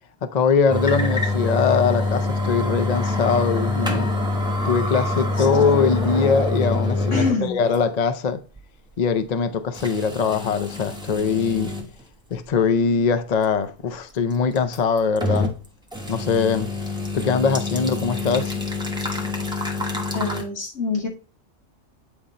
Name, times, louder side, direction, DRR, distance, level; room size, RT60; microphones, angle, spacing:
voice 1, 0.2-4.1 4.6-8.4 9.0-11.7 12.3-15.5 16.1-16.7 17.1-18.6, left 5 dB, 45° left, 0.5 m, -22 dB
sound 1, 0.7-7.4 7.7-7.8 8.6-8.7 9.7-11.9 12.4-12.5 14.6-15.6 15.9-20.4, left 2 dB, 5° right, 1.2 m, -25 dB
voice 2, 7.1-7.6 20.1-21.1, left 3 dB, 70° left, 2.5 m, -25 dB
8.8 x 3.8 x 4.2 m
omnidirectional pair, 1.3 m